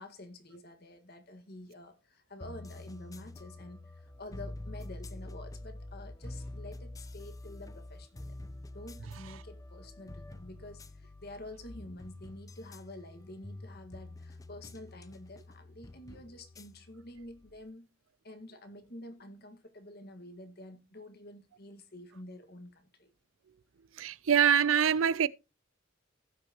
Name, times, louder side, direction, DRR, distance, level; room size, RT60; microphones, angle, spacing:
voice 1, 0.0-8.4 8.7-17.9 18.2-23.1, left 1 dB, 50° left, 1.7 m, -49 dB
sound 1, 2.4-17.7, left 1 dB, 15° left, 0.5 m, -47 dB
voice 2, 24.0-25.3, right 8 dB, 85° right, 0.5 m, -24 dB
17.0 x 5.9 x 2.9 m
head